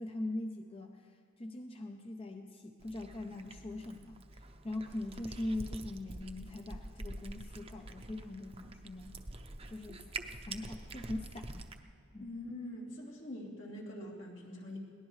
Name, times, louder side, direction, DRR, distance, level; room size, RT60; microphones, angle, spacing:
voice 1, 0.0-4.2 4.6-9.2 9.7-10.1 10.5-11.7 12.1-12.3, left 1 dB, 30° left, 4 dB, 0.6 m, -41 dB
Cat, 2.8-11.8, right 2 dB, 30° right, 0.7 m, -46 dB
voice 2, 12.2-14.8, left 1 dB, 70° left, -4 dB, 3.2 m, -44 dB
22.0 x 18.5 x 3.2 m, 2.5 s
head